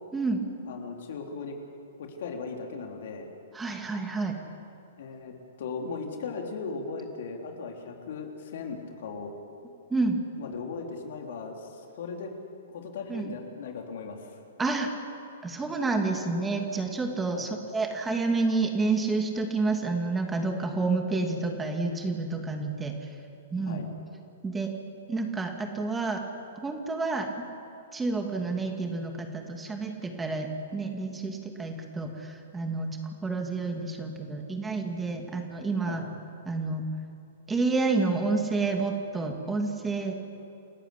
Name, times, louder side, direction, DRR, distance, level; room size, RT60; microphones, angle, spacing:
voice 1, 0.7-1.6 2.0-3.3 5.0-9.3 10.4-12.3 12.7-14.3 17.3-17.5 23.7-23.9 35.8-36.0, left 4 dB, 65° left, 2 dB, 3.6 m, -37 dB
voice 2, 3.5-4.4 9.9-10.2 13.1-13.3 14.6-14.9 15.4-23.0 23.5-23.9 24.4-24.7 25.1-26.2 26.6-27.3 27.9-36.1 36.5-36.9 37.5-40.2, right 3 dB, 10° right, 3 dB, 2.5 m, -29 dB
29.0 x 14.5 x 8.5 m, 2.6 s
hypercardioid pair, 120°, 0 cm